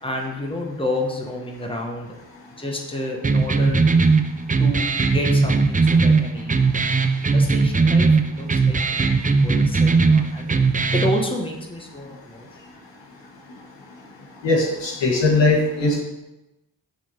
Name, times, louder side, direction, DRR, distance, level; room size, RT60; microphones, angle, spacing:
voice 1, 0.0-2.1 2.6-3.8 4.6-6.6 7.3-10.6 10.9-12.5, left 1 dB, 10° left, 0 dB, 1.3 m, -29 dB
sound 1, 3.2-11.2, right 4 dB, 20° right, 0.5 m, -18 dB
voice 2, 14.4-16.0, left 2 dB, 80° left, -2 dB, 1.6 m, -19 dB
6.3 x 3.5 x 5.6 m, 0.98 s
cardioid pair, 50°, 43 cm